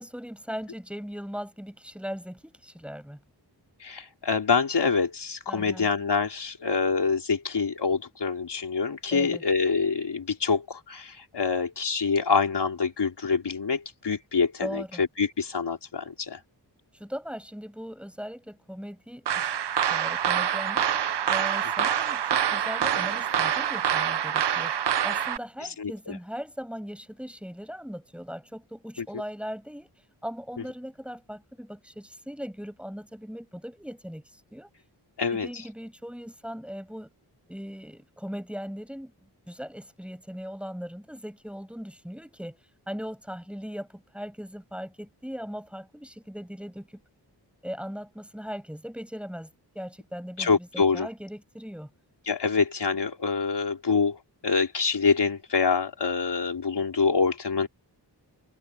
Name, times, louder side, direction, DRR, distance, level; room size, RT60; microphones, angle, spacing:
voice 1, 0.0-3.2 5.5-5.9 9.1-9.4 14.6-15.0 16.9-19.5 19.9-20.9 21.3-29.9 30.2-34.2 34.5-34.7 35.3-37.1 37.5-39.1 39.5-42.6 42.9-47.0 47.6-51.9, equal, 5° right, 7.0 m, -39 dB
voice 2, 3.8-16.4 21.8-21.9 25.8-26.2 35.2-35.6 50.4-51.1 52.3-54.2 54.4-57.7, left 5 dB, 70° left, 4.1 m, -26 dB
sound 1, 19.3-25.4, right 9 dB, 70° right, 0.8 m, -26 dB
wide cardioid pair, 100°, 42 cm